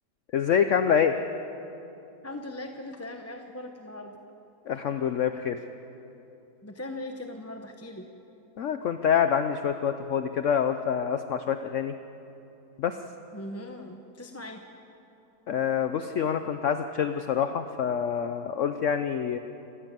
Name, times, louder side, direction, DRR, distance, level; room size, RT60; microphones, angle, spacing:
voice 1, 0.3-1.1 4.7-5.6 8.6-11.9 12.8-13.0 15.5-19.4, left 8 dB, 60° left, 8 dB, 0.9 m, -26 dB
voice 2, 2.2-4.2 6.6-8.1 13.3-14.6, left 1 dB, 10° left, 4 dB, 0.8 m, -39 dB
28.5 x 15.0 x 7.5 m, 2.9 s
omnidirectional pair, 1.7 m